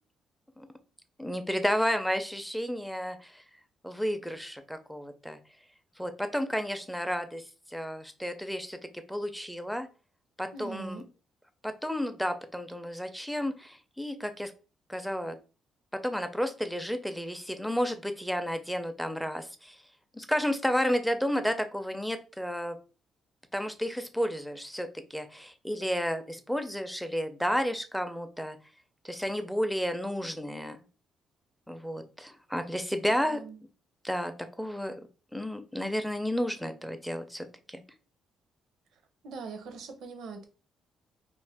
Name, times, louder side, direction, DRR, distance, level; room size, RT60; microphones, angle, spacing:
voice 1, 1.2-3.4 3.8-5.4 6.0-8.8 9.1-9.9 10.4-11.0 11.6-14.5 14.9-15.4 15.9-19.8 20.1-22.8 23.5-28.6 29.0-30.8 31.7-33.4 34.0-34.3 34.6-35.0 35.3-37.8, equal, ahead, 0.4 m, -32 dB
voice 2, 10.5-11.1 33.0-33.6 39.2-40.4, right 4 dB, 80° right, 0.6 m, -41 dB
2.4 x 2.4 x 3.4 m
cardioid pair, 90°, 0 cm